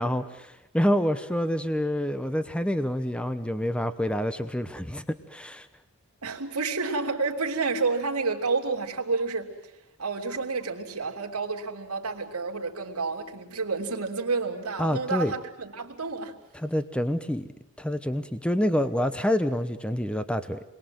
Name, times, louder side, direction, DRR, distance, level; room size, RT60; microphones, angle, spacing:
voice 1, 0.0-5.7 14.8-15.3 16.5-17.5 17.8-20.6, equal, 5° left, 0.9 m, -27 dB
voice 2, 6.2-9.5 10.0-16.3, right 4 dB, 85° right, 3.3 m, -29 dB
29.0 x 22.0 x 7.9 m
head